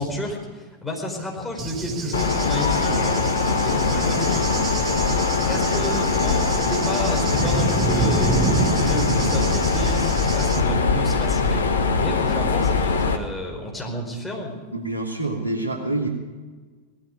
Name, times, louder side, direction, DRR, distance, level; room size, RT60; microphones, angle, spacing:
voice 1, 0.0-4.5 5.4-8.4 8.8-14.6, left 1 dB, 10° left, 0 dB, 4.5 m, -31 dB
Cricket / Thunder, 1.6-10.6, right 5 dB, 25° right, 1.5 m, -28 dB
Mechanisms, 2.1-13.2, left 4 dB, 70° left, 1.4 m, -22 dB
voice 2, 14.7-16.1, right 2 dB, 90° left, 0 dB, 2.8 m, -26 dB
19.5 x 13.5 x 5.2 m, 1.4 s
figure-of-eight pair, 90°, 0 cm